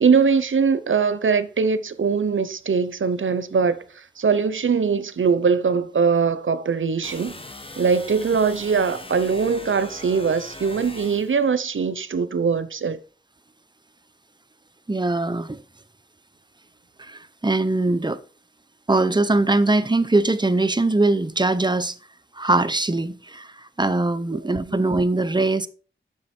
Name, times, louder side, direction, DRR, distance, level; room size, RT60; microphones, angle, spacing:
voice 1, 0.0-7.4 7.8-13.0 24.7-24.8, right 5 dB, 80° right, 0.7 m, -21 dB
sound 1, 7.0-11.4, left 2 dB, 25° left, 1.0 m, -40 dB
voice 2, 14.9-15.6 17.1-18.2 18.9-21.9 22.4-23.5 23.8-25.7, right 2 dB, 20° right, 0.7 m, -21 dB
7.7 x 6.2 x 4.3 m
cardioid pair, 40°, 20 cm